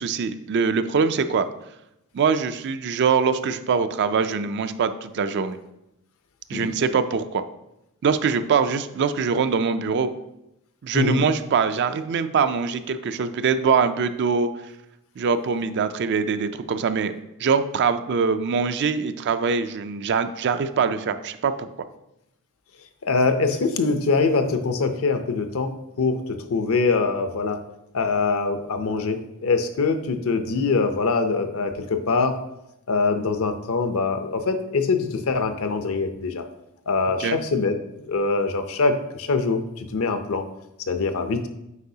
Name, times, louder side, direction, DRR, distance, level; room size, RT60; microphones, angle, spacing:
voice 1, 0.0-1.5 2.1-5.6 6.5-7.4 8.0-10.1 10.8-14.5 15.2-21.7 37.2-37.4, right 5 dB, 50° right, 11 dB, 0.4 m, -23 dB
voice 2, 23.1-25.7 26.0-26.2 26.5-27.6 27.9-32.3 32.9-36.4 36.9-37.7 38.1-40.4 40.9-41.5, left 4 dB, 65° left, 7 dB, 0.6 m, -23 dB
8.1 x 4.7 x 2.7 m, 0.88 s
head